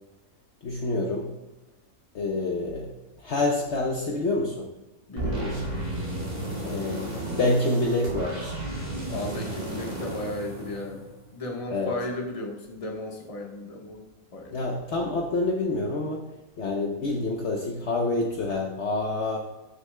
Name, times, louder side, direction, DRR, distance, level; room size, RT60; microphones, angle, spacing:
voice 1, 0.6-1.3 2.1-4.7 6.6-8.5 11.7-11.9 14.5-16.2 16.6-19.4, left 2 dB, 55° left, 0 dB, 1.0 m, -27 dB
voice 2, 5.1-5.9 9.1-11.0 11.3-14.0 14.3-14.6, left 2 dB, 25° left, 0 dB, 1.2 m, -35 dB
sound 1, 5.2-11.3, right 1 dB, 50° right, 3.2 m, -33 dB
14.5 x 6.7 x 2.2 m, 1.1 s
omnidirectional pair, 1.5 m